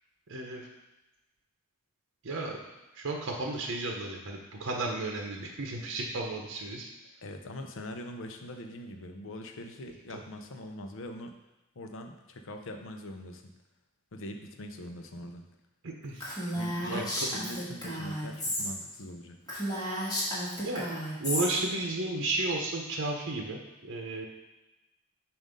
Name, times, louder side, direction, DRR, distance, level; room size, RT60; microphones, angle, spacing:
voice 1, 0.3-0.7 2.2-2.6 2.9-6.9 15.8-16.3 16.9-17.3 20.6-20.9 21.2-24.3, right 2 dB, 60° right, 0 dB, 0.8 m, -33 dB
voice 2, 7.2-11.3 11.8-13.5 14.1-15.5 16.5-19.4, left 1 dB, 65° left, 5 dB, 0.6 m, -42 dB
Female speech woman speaking, 16.2-18.7 19.0-19.1 19.5-21.5, equal, 20° left, 1.6 m, -33 dB
7.2 x 2.6 x 5.2 m, 1.0 s
head